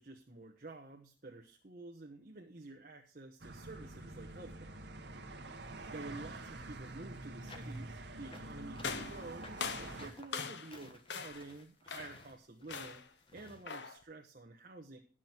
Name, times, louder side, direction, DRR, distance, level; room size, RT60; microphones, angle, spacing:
voice 1, 0.0-4.8 5.9-9.5 9.8-13.1 13.3-15.0, right 2 dB, 50° right, 1 dB, 1.1 m, -50 dB
sound 1, 3.4-10.1, right 2 dB, 65° right, 1.4 m, -46 dB
sound 2, 7.4-13.6, left 2 dB, 30° left, 1.5 m, -56 dB
sound 3, 8.8-10.8 11.1-11.5 11.9-12.3 12.7-13.1 13.7-14.0, left 5 dB, 75° left, 0.9 m, -42 dB
12.5 x 6.2 x 6.0 m, 0.37 s
head